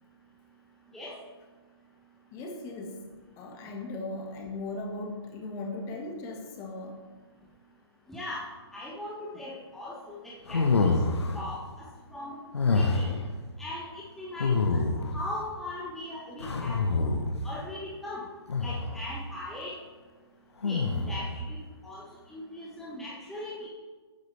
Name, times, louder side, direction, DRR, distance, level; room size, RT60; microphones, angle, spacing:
voice 1, 2.3-3.0 3.4-7.0, left 2 dB, 20° left, 2 dB, 2.0 m, -38 dB
voice 2, 8.1-8.4 8.7-10.9 11.3-12.4 12.7-13.1 13.6-14.8 15.1-17.1 17.4-18.3 18.6-19.7 20.6-21.6 21.8-23.7, left 1 dB, ahead, -7 dB, 1.5 m, -39 dB
sound 1, 10.5-11.4 12.5-13.2 14.4-15.2 16.4-17.4 18.5-19.0 20.6-21.3, left 3 dB, 75° left, 1.5 m, -26 dB
14.5 x 10.0 x 3.5 m, 1.4 s
figure-of-eight pair, 140°, 14 cm